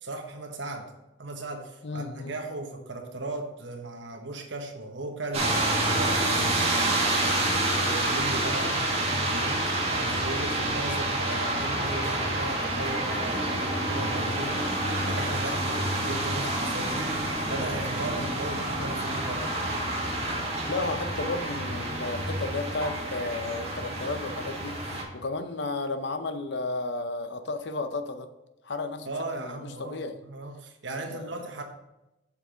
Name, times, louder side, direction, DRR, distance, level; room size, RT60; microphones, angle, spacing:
voice 1, 0.0-0.9 1.2-5.6 5.8-9.6 9.9-14.6 15.0-19.5 29.0-31.6, right 2 dB, 65° right, 4 dB, 1.3 m, -37 dB
voice 2, 1.8-2.4 20.7-28.3 28.6-29.1 29.3-30.2 31.1-31.3, left 3 dB, 60° left, 9 dB, 0.7 m, -33 dB
sound 1, 5.3-25.0, right 1 dB, 30° right, 1.7 m, -28 dB
8.4 x 6.7 x 3.8 m, 0.96 s
head